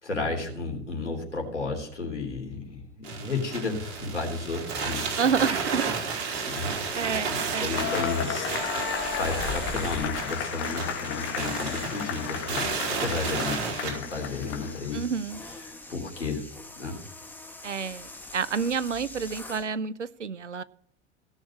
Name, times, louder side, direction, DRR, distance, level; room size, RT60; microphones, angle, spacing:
voice 1, 0.0-5.2 6.3-7.1 7.6-15.0 15.6-16.5 16.8-17.0, left 3 dB, 85° left, 1 dB, 3.4 m, -33 dB
sound 1, 3.0-13.9, right 5 dB, 65° right, 4.5 m, -32 dB
voice 2, 5.2-6.4 6.9-7.8 14.9-15.4 17.6-20.6, right 6 dB, 90° right, 18 dB, 0.6 m, -29 dB
Cheering / Applause / Crowd, 7.7-15.0, left 9 dB, 45° left, 2.0 m, -33 dB
sound 2, 7.7-19.7, left 2 dB, 5° left, 2.0 m, -43 dB
17.0 x 6.5 x 7.3 m, 0.66 s
figure-of-eight pair, 80°, 35 cm